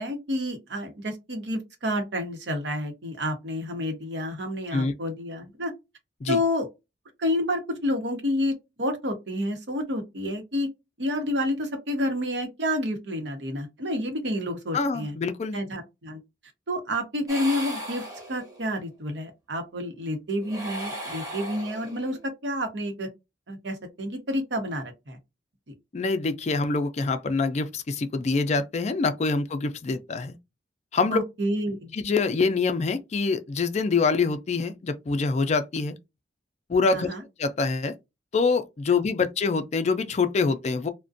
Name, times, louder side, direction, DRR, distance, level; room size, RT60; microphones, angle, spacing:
voice 1, 0.0-5.7 6.3-6.7 7.2-10.7 11.0-15.1 15.5-16.2 16.7-18.0 18.3-23.1 23.5-25.2 25.7-25.8 31.1-31.9 36.9-37.2, left 1 dB, 75° right, 0.8 m, -29 dB
voice 2, 14.7-15.6 25.9-30.4 30.9-31.2 31.9-36.0 36.7-37.1 37.4-37.9 38.3-40.9, left 4 dB, 40° left, 0.4 m, -25 dB
sound 1, 17.3-18.7 20.4-22.2, right 1 dB, 20° right, 0.8 m, -37 dB
2.4 x 2.1 x 2.4 m
head